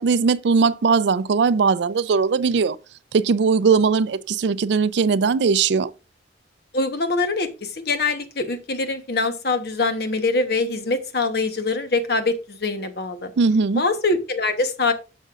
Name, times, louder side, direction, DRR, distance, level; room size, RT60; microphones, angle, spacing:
voice 1, 0.0-2.8 3.1-5.9 13.4-13.8, right 5 dB, 65° right, 0.4 m, -19 dB
voice 2, 6.7-13.3 13.8-14.9, left 3 dB, 55° left, 1.1 m, -23 dB
11.5 x 6.6 x 2.5 m
head